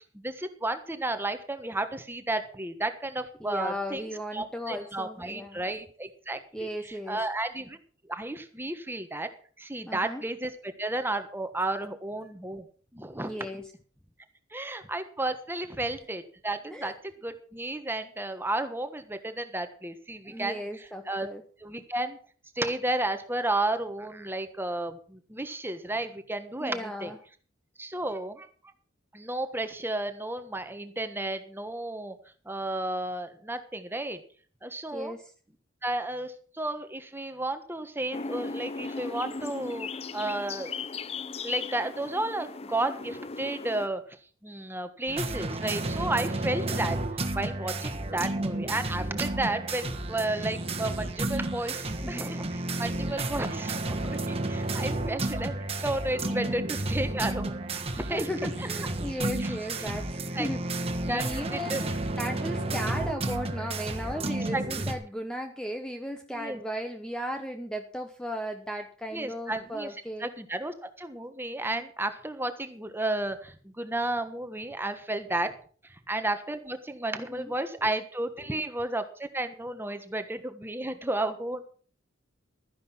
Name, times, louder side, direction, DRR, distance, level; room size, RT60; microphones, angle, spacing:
voice 1, 0.1-4.0 4.3-6.7 7.1-7.8 8.1-9.3 9.6-12.7 12.9-13.4 14.5-16.9 17.2-20.6 21.1-21.3 21.6-22.2 22.6-27.1 27.8-28.5 29.1-32.1 32.4-34.2 34.6-35.1 35.8-39.9 40.1-40.7 41.4-44.0 44.4-47.0 47.3-52.5 52.8-55.5 55.8-57.5 58.0-58.2 60.3-60.5 61.1-61.8 64.3-64.8 66.4-66.6 69.1-69.9 70.2-75.5 76.1-81.7, right 2 dB, 10° right, 9 dB, 1.3 m, -32 dB
voice 2, 3.4-5.6 6.5-7.2 9.9-10.2 13.2-13.7 16.7-16.9 20.3-21.4 26.6-27.2 34.9-35.3 52.0-52.3 52.9-53.0 56.3-56.7 58.1-61.9 62.2-70.3 77.1-77.5 77.8-77.9 78.4-78.6, equal, 5° left, 5 dB, 0.9 m, -36 dB
sound 1, 38.1-43.9, left 4 dB, 30° left, 0.5 m, -37 dB
sound 2, 45.1-64.9, right 2 dB, 30° right, 1.5 m, -32 dB
13.0 x 10.5 x 5.7 m, 0.43 s
head